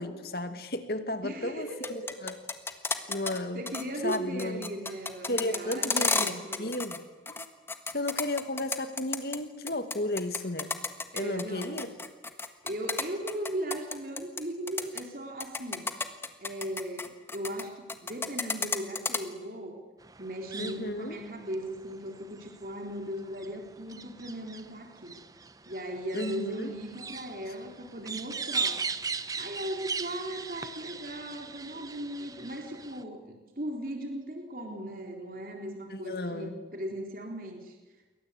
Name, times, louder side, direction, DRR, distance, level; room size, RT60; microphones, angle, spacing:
voice 1, 0.0-2.4 3.1-3.6 4.0-4.7 5.2-7.5 7.9-10.7 11.1-11.9 20.6-21.2 26.1-26.7 35.9-36.6, left 1 dB, 55° left, 9 dB, 2.3 m, -34 dB
voice 2, 1.2-2.1 2.9-3.1 3.5-6.7 11.1-11.9 12.6-15.9 16.4-19.8 20.2-25.2 25.7-28.8 29.4-37.8, right 1 dB, 50° right, 2 dB, 3.8 m, -38 dB
sound 1, 1.7-3.4 3.7-3.8 4.1-7.0 7.3-9.4 9.7-14.4 14.7-15.0 15.4-17.6 17.9-19.2, left 3 dB, 15° left, 1.5 m, -31 dB
sound 2, 20.0-33.0, right 5 dB, 20° right, 0.9 m, -39 dB
28.5 x 23.0 x 8.5 m, 1.3 s
head